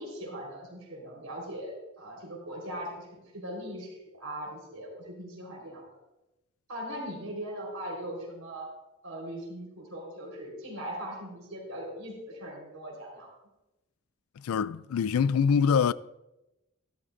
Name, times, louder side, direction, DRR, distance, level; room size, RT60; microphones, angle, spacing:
voice 1, 0.0-5.8 6.7-8.7 9.0-13.3, equal, 80° right, 4.1 m, -40 dB
voice 2, 14.4-15.9, left 6 dB, 85° left, 0.3 m, -24 dB
12.5 x 12.5 x 2.5 m
head